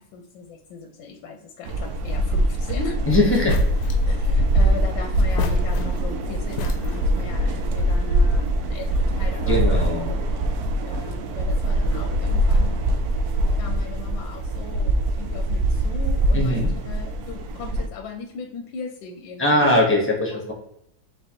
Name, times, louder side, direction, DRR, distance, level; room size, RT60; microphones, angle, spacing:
voice 1, 0.0-3.5 4.1-10.2 10.8-19.8 20.3-20.4, left 4 dB, 90° left, 3 dB, 1.4 m, -38 dB
sound 1, 1.6-17.9, right 1 dB, 75° right, 0.9 m, -22 dB
voice 2, 3.1-3.5 9.3-10.1 16.3-16.7 19.4-20.5, left 1 dB, 10° left, -1 dB, 0.8 m, -20 dB
sound 2, 3.3-4.1 5.1-6.2 6.5-7.2, left 6 dB, 70° left, 1.0 m, -32 dB
4.3 x 3.8 x 2.9 m, 0.75 s
omnidirectional pair, 2.1 m